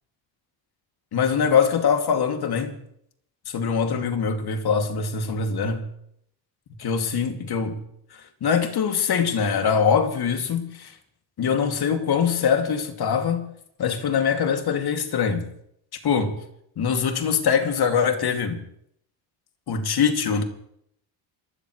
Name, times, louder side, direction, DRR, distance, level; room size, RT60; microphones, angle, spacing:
voice 1, 1.1-2.7 3.5-5.8 6.8-7.8 8.4-10.9 11.4-13.5 13.8-15.5 16.0-16.4 16.8-18.6 19.7-20.4, left 6 dB, 50° left, 2.5 m, -23 dB
28.0 x 13.0 x 3.2 m
supercardioid pair, 75°, 49 cm